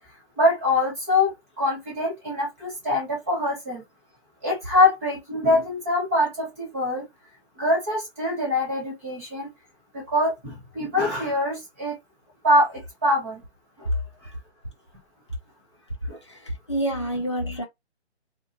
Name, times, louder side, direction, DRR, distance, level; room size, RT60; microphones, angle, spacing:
voice 1, 0.4-3.8 4.4-7.0 7.6-9.5 9.9-11.9 12.4-13.4 13.8-13.9 16.1-16.2, left 1 dB, 15° right, 0.9 m, -24 dB
voice 2, 16.3-17.6, right 1 dB, 25° left, 0.4 m, -28 dB
2.8 x 2.6 x 2.6 m
hypercardioid pair, 165°, 34 cm